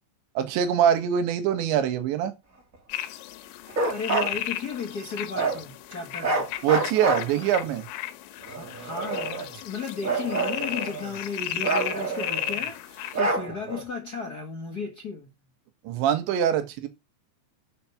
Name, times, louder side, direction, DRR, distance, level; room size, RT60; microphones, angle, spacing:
voice 1, 0.4-2.3 6.6-7.8 15.9-16.9, right 9 dB, 75° right, 3.9 m, -23 dB
sound 1, 2.9-13.2, left 13 dB, 85° left, 3.4 m, -35 dB
Bark, 3.7-4.3 5.3-5.6 6.2-7.7 8.5-9.6 10.0-11.2 11.6-12.6 13.1-13.8, right 3 dB, 25° right, 2.3 m, -28 dB
voice 2, 3.9-6.5 8.4-15.3, left 5 dB, 65° left, 0.9 m, -35 dB
12.0 x 6.7 x 5.9 m
omnidirectional pair, 5.2 m